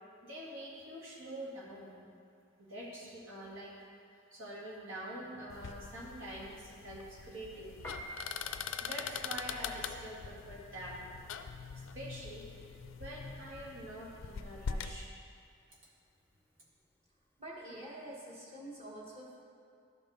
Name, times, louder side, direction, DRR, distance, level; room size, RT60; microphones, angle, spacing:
voice 1, 0.2-2.0 2.6-4.0 4.3-8.0 8.8-11.1 11.7-15.1, right 1 dB, 85° right, -4 dB, 1.8 m, -46 dB
sound 1, 5.5-15.0, left 6 dB, 85° left, 0.4 m, -43 dB
Piano, 7.7-18.1, right 1 dB, 10° left, 0.5 m, -53 dB
voice 2, 17.4-19.4, right 1 dB, 35° right, -5 dB, 1.6 m, -46 dB
12.0 x 5.4 x 4.0 m, 2.3 s
head